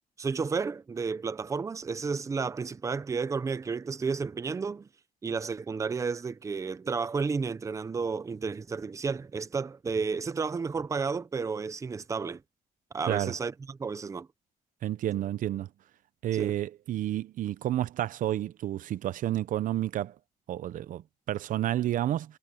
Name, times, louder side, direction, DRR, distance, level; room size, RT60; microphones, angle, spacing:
voice 1, 0.2-4.9 5.2-12.4 12.9-14.3 16.3-16.5, right 5 dB, 20° right, 0.7 m, -32 dB
voice 2, 14.8-15.7 16.2-20.1 20.5-22.4, right 12 dB, 60° right, 0.7 m, -30 dB
cardioid pair, 155°, 15 cm